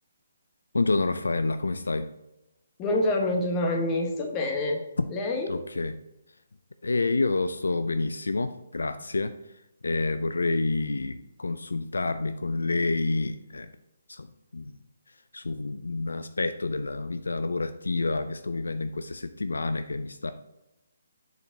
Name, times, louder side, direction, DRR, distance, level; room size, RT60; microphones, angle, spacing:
voice 1, 0.7-2.1 5.0-5.1 5.5-5.9 6.8-13.7 14.1-14.3 14.5-14.8 15.1-20.3, left 3 dB, 70° left, 11 dB, 0.4 m, -28 dB
voice 2, 2.8-4.8 5.1-5.5, left 2 dB, 20° left, 2 dB, 1.3 m, -26 dB
7.9 x 6.5 x 2.8 m, 0.92 s
figure-of-eight pair, 140°, 0 cm